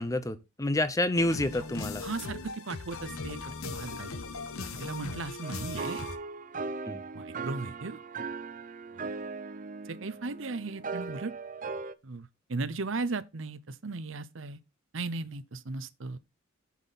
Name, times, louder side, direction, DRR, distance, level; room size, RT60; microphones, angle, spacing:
voice 1, 0.0-2.0 6.9-7.0, left 1 dB, 15° left, 0.8 m, -28 dB
sound 1, 1.1-6.2, left 4 dB, 90° left, 1.2 m, -39 dB
voice 2, 2.0-4.1 4.7-6.0 7.1-8.0 8.9-9.0 9.8-11.3 12.0-14.6 14.9-16.2, right 3 dB, 65° right, 0.8 m, -36 dB
sound 2, 5.4-11.9, right 4 dB, 40° right, 0.6 m, -38 dB
7.5 x 7.3 x 4.1 m
head